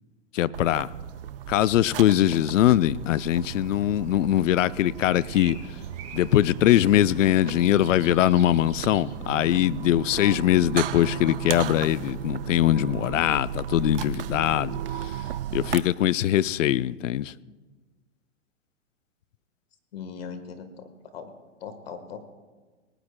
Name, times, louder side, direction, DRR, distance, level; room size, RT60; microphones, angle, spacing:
voice 1, 0.3-0.9 1.5-5.6 6.1-15.1 15.5-17.3, left 12 dB, 85° left, 0.5 m, -22 dB
sound 1, 0.5-15.8, right 10 dB, 50° right, 0.4 m, -35 dB
sound 2, 5.0-9.2, right 7 dB, 20° right, 1.3 m, -47 dB
voice 2, 19.9-21.3 21.6-22.3, left 6 dB, 50° left, 1.4 m, -39 dB
20.5 x 18.5 x 2.2 m
hypercardioid pair, 170°, 37 cm